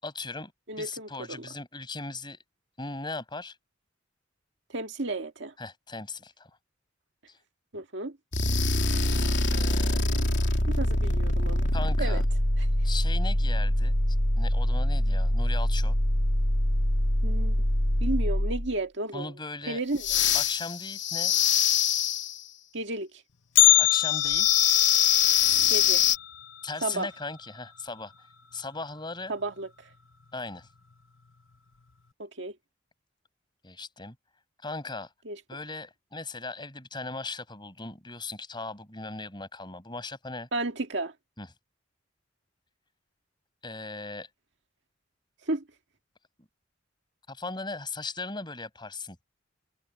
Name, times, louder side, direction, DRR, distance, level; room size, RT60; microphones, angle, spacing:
voice 1, 0.0-0.5 0.8-2.4 2.8-3.6 5.6-6.5 7.3-7.4 9.5-10.0 11.7-12.2 12.8-13.9 14.4-15.9 19.1-19.8 20.3-21.3 23.8-24.6 26.6-28.1 28.5-29.3 30.3-30.7 33.6-34.2 34.6-35.1 35.5-40.5 41.4-41.5 43.6-44.3 47.3-49.2, left 3 dB, 25° left, 8.0 m, -38 dB
voice 2, 0.7-1.5 4.7-5.5 7.7-8.2 10.7-11.7 12.0-12.2 12.6-12.7 17.2-17.6 18.0-19.3 19.7-20.1 22.7-23.2 25.7-26.1 26.8-27.1 29.3-29.9 32.2-32.5 35.3-35.4 40.5-41.1 45.5-45.6, right 2 dB, 65° right, 2.0 m, -33 dB
sound 1, 8.3-18.7 20.0-22.4 24.0-26.2, left 3 dB, 65° left, 3.4 m, -24 dB
Bell, 23.6-27.6 27.9-28.0 28.5-28.6 29.4-29.5 30.3-30.5 30.9-31.0, left 17 dB, 90° left, 1.0 m, -25 dB
head